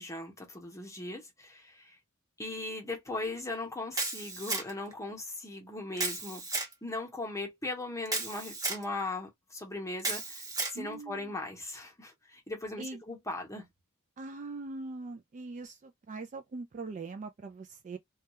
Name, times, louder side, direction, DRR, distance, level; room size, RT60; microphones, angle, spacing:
voice 1, 0.0-1.9 2.4-6.5 6.8-13.7, left 2 dB, 15° left, 0.8 m, -39 dB
Camera, 3.9-4.9 6.0-6.7 8.1-8.8 10.0-10.8, right 3 dB, 15° right, 0.8 m, -34 dB
voice 2, 10.7-11.3 12.8-13.0 14.2-18.0, right 3 dB, 35° right, 0.3 m, -41 dB
2.3 x 2.2 x 2.8 m
head